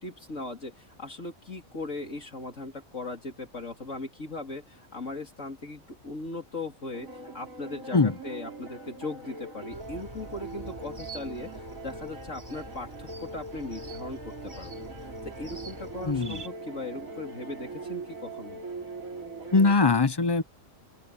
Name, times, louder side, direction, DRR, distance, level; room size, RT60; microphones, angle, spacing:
voice 1, 0.0-18.6, left 2 dB, 65° left, 3.5 m, -39 dB
sound 1, 6.9-19.7, right 3 dB, 90° right, 3.5 m, -41 dB
sound 2, 9.7-16.5, right 2 dB, 30° right, 7.9 m, -45 dB
voice 2, 16.1-16.4 19.5-20.4, left 3 dB, 30° left, 0.5 m, -21 dB
omnidirectional pair, 1.4 m